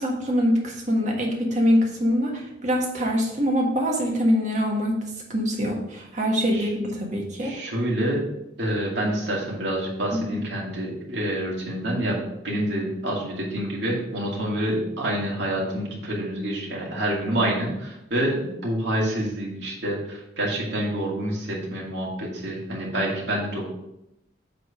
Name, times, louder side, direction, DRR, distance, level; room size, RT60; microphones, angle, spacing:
voice 1, 0.0-5.0 5.3-7.5 10.1-10.4, equal, 40° right, -1 dB, 1.5 m, -24 dB
voice 2, 7.4-8.2 8.6-12.2 12.4-23.7, right 1 dB, 75° right, -3 dB, 2.3 m, -27 dB
8.0 x 3.8 x 5.0 m, 0.86 s
head